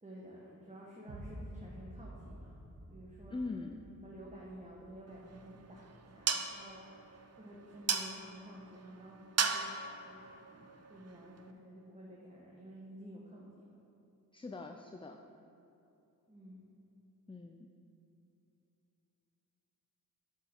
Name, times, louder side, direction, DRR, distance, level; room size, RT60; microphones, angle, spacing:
voice 1, 0.0-2.5 2.8-3.4 4.0-6.8 7.4-9.6 10.0-13.5 16.3-16.7, right 1 dB, 20° right, -4 dB, 1.1 m, -52 dB
sound 1, 1.1-7.1, equal, 60° right, 1.2 m, -52 dB
voice 2, 3.3-3.8 14.3-15.2 17.3-17.7, left 3 dB, 15° left, 4 dB, 0.3 m, -42 dB
sound 2, 5.1-11.5, right 5 dB, 45° right, 0.5 m, -38 dB
6.4 x 5.4 x 4.4 m, 2.9 s
cardioid pair, 40°, 36 cm